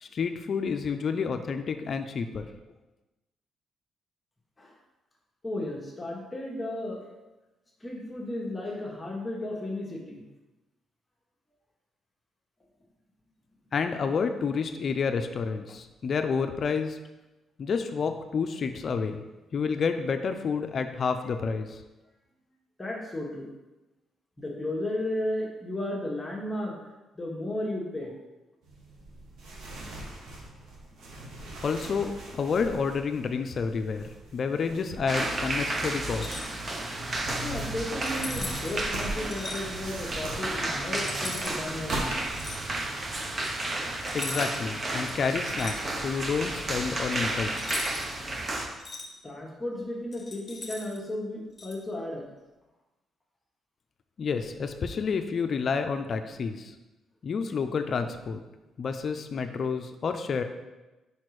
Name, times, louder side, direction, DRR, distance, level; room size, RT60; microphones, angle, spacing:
voice 1, 0.0-2.5 13.7-17.0 17.6-19.2 19.5-21.8 31.6-36.4 44.1-47.8 54.2-56.7 57.2-58.4 58.8-60.4, left 5 dB, 50° left, 7 dB, 0.5 m, -29 dB
voice 2, 5.4-7.0 7.8-10.2 22.8-23.5 24.4-26.8 27.1-28.1 31.0-31.1 37.4-42.2 49.2-52.2, left 1 dB, 20° left, -2 dB, 1.2 m, -34 dB
sound 1, 28.6-43.3, right 1 dB, 80° right, 1.3 m, -42 dB
sound 2, 35.1-48.7, right 2 dB, 35° right, 0.9 m, -32 dB
sound 3, 36.1-36.5 38.0-38.8 39.3-39.6 41.0-41.6 42.3-42.6 44.1-44.7 45.0-46.2 47.6-48.1 48.5-49.1 50.1-51.0 51.6-51.8, left 3 dB, 35° left, 1.1 m, -39 dB
5.0 x 4.3 x 4.7 m, 1.1 s
cardioid pair, 90°, 0 cm